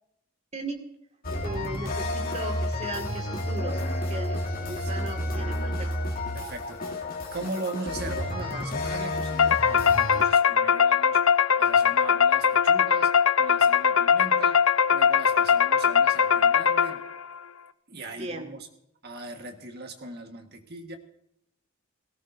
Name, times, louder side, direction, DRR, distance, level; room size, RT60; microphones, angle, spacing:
voice 1, 0.5-0.8 1.4-5.9 18.2-18.5, right 1 dB, 30° right, 3 dB, 2.0 m, -37 dB
sound 1, 1.2-10.2, left 1 dB, 45° left, 2.6 m, -31 dB
voice 2, 4.7-5.4 6.3-6.8 7.3-11.2 11.6-13.1 13.4-14.6 14.9-17.0 17.9-18.7 19.0-21.0, right 2 dB, 50° right, 5 dB, 1.5 m, -39 dB
sound 2, 9.4-17.2, left 7 dB, 75° left, 0.6 m, -21 dB
18.0 x 17.5 x 2.7 m, 0.76 s
head